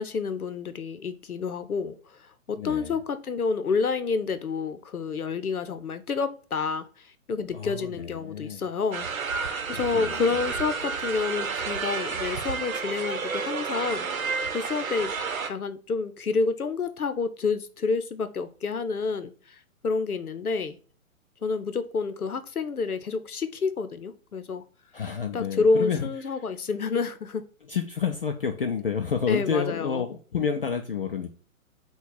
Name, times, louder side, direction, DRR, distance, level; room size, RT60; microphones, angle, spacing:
voice 1, 0.0-9.1 9.4-14.2 14.5-15.1 15.5-20.8 21.4-24.6 25.3-27.4 29.3-30.0, left 4 dB, 85° left, 11 dB, 0.7 m, -29 dB
voice 2, 2.6-3.0 7.5-8.6 9.7-10.2 24.9-26.1 27.7-31.3, left 6 dB, 45° left, 6 dB, 0.4 m, -29 dB
sound 1, 8.9-15.5, right 5 dB, 70° right, 0.8 m, -31 dB
5.7 x 2.3 x 3.9 m, 0.42 s
figure-of-eight pair, 130°, 43 cm